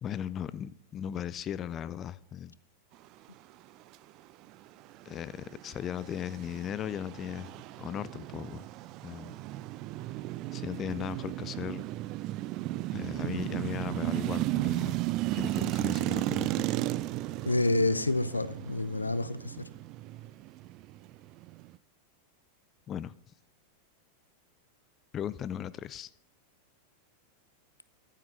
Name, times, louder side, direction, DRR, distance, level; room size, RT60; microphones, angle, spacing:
voice 1, 0.0-2.6 5.1-7.5 7.8-8.7 9.0-9.3 10.5-11.8 12.9-15.0 15.3-16.7 22.9-23.1 25.1-26.1, left 10 dB, 30° left, 18 dB, 0.4 m, -37 dB
sound 1, 5.0-21.8, right 17 dB, 40° right, 0.4 m, -34 dB
voice 2, 17.5-19.6, left 2 dB, 80° left, 15 dB, 0.7 m, -28 dB
14.5 x 11.5 x 3.7 m, 0.66 s
figure-of-eight pair, 90°, 0 cm